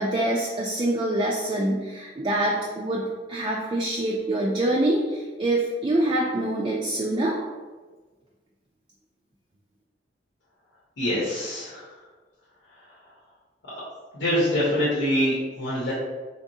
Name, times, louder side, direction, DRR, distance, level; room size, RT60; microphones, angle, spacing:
voice 1, 0.0-7.4, right 1 dB, 25° right, -3 dB, 0.3 m, -25 dB
voice 2, 11.0-11.9 14.1-15.9, equal, 90° left, -9 dB, 1.0 m, -24 dB
3.5 x 2.9 x 2.7 m, 1.3 s
head